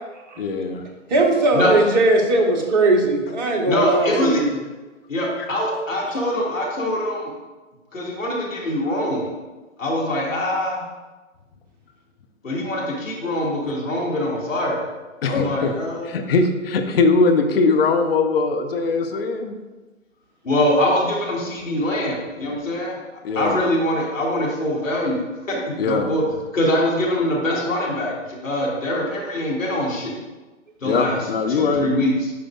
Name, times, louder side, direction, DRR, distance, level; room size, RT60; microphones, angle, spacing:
voice 1, 0.4-0.8 15.2-19.6 23.2-23.6 25.8-26.2 30.8-31.9, left 4 dB, 50° left, 6 dB, 0.7 m, -21 dB
voice 2, 1.1-4.5, right 2 dB, 35° right, 0 dB, 1.2 m, -18 dB
voice 3, 3.7-4.4 5.1-7.3 7.9-9.3 9.8-10.8 12.4-14.8 15.2-16.2 20.4-23.0 23.3-26.2 26.5-30.2 30.8-31.2 31.5-32.3, left 1 dB, 80° left, -3 dB, 2.2 m, -23 dB
9.4 x 4.8 x 2.4 m, 1.2 s
figure-of-eight pair, 135°, 39 cm